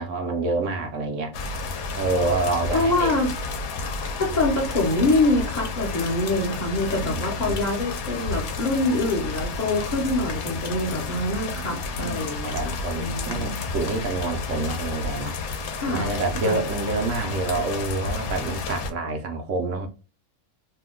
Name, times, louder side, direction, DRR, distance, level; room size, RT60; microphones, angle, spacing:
voice 1, 0.0-1.4 1.9-3.1 6.9-7.6 11.3-15.4 15.9-19.9, right 3 dB, 70° right, 0.9 m, -28 dB
sound 1, 1.3-18.9, left 4 dB, 75° left, 1.0 m, -31 dB
voice 2, 2.7-3.3 4.2-13.6 15.8-16.1 16.4-16.6, left 2 dB, 45° left, 0.6 m, -25 dB
2.8 x 2.1 x 3.5 m
omnidirectional pair, 1.5 m